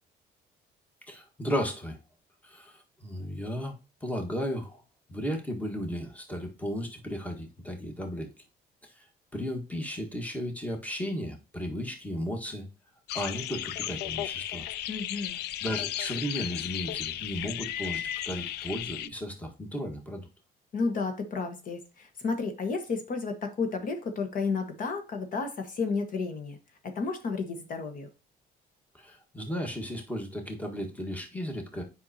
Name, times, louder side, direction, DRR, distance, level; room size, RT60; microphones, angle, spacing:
voice 1, 1.1-2.0 2.4-4.8 5.1-8.3 8.8-9.1 9.3-12.6 13.1-14.6 15.6-20.2 28.9-31.8, equal, 10° left, 3 dB, 1.6 m, -35 dB
sound 1, 13.1-19.1, left 12 dB, 75° left, 0.5 m, -35 dB
voice 2, 14.9-15.4 20.7-26.6 26.8-28.1, left 4 dB, 55° left, 6 dB, 1.4 m, -32 dB
7.8 x 5.6 x 2.8 m, 0.29 s
cardioid pair, 110°, 17 cm